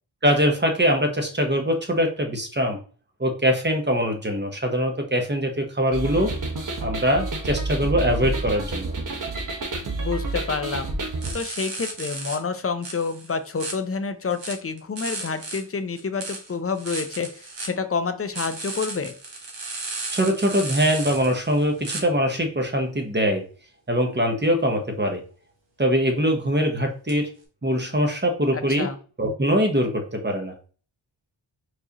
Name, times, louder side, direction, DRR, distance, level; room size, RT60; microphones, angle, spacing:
voice 1, 0.2-2.8 3.2-6.3 6.8-8.9 20.1-23.4 23.9-25.2 25.8-27.3 27.6-28.9 29.2-30.5, equal, 20° right, 3 dB, 1.0 m, -22 dB
sound 1, 5.9-11.3, right 2 dB, 40° right, 0.9 m, -29 dB
voice 2, 10.0-11.0 11.3-19.1 28.5-29.0, left 5 dB, 30° left, 10 dB, 0.6 m, -28 dB
sound 2, 11.2-12.4 12.8-13.7 14.3-15.6 16.0-17.7 18.3-22.0 27.1-27.2, right 3 dB, 60° right, 1.2 m, -34 dB
4.6 x 2.7 x 2.9 m, 0.39 s
cardioid pair, 45°, 49 cm